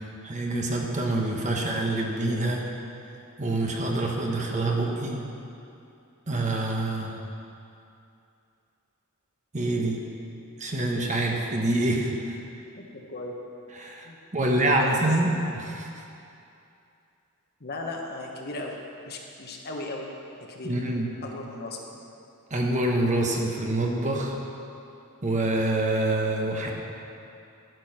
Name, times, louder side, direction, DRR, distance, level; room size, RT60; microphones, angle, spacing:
voice 1, 0.2-2.6 3.4-5.2 6.3-7.1 9.5-10.0 10.6-12.4 13.8-14.1 14.3-15.9 20.6-21.1 22.5-24.4 25.2-26.7, right 2 dB, 35° right, 0 dB, 1.2 m, -26 dB
voice 2, 12.8-13.4 14.0-15.0 17.6-18.8 19.1-20.1 20.5-20.8 21.2-22.0, left 2 dB, 45° left, 1 dB, 1.3 m, -37 dB
12.5 x 7.2 x 5.9 m, 2.7 s
head